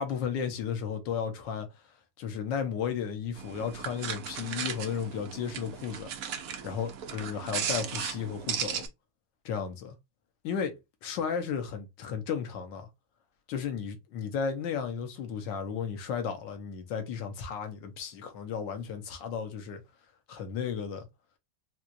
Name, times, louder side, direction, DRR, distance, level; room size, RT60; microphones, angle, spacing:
voice 1, 0.0-1.7 2.2-6.1 6.6-8.9 9.4-10.0 10.4-12.9 13.5-19.8 20.3-21.1, left 7 dB, 65° left, 1.5 m, -34 dB
sound 1, 3.4-8.9, right 8 dB, 70° right, 0.8 m, -36 dB
4.4 x 2.4 x 2.5 m
omnidirectional pair, 2.3 m